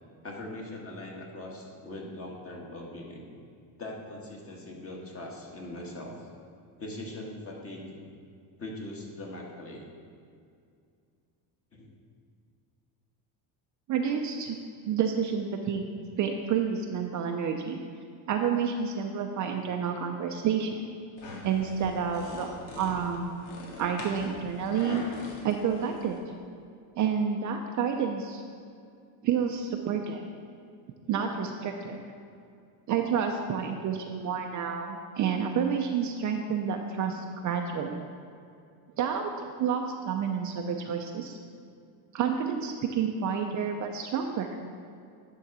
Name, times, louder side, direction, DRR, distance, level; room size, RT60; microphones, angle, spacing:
voice 1, 0.2-3.3 3.8-6.3 6.8-8.0 8.6-9.8 11.7-11.9, left 1 dB, 30° left, -1 dB, 1.6 m, -41 dB
voice 2, 13.9-14.6 14.9-15.8 16.2-17.8 18.3-20.8 21.4-23.4 23.8-25.0 25.4-26.2 27.0-28.4 29.2-30.2 31.1-32.0 32.9-38.0 39.0-41.4 42.1-44.5, right 7 dB, 40° right, 3 dB, 0.6 m, -29 dB
sound 1, 21.2-26.2, left 2 dB, 85° left, 1.8 m, -43 dB
9.9 x 3.9 x 6.0 m, 2.4 s
cardioid pair, 135°, 45 cm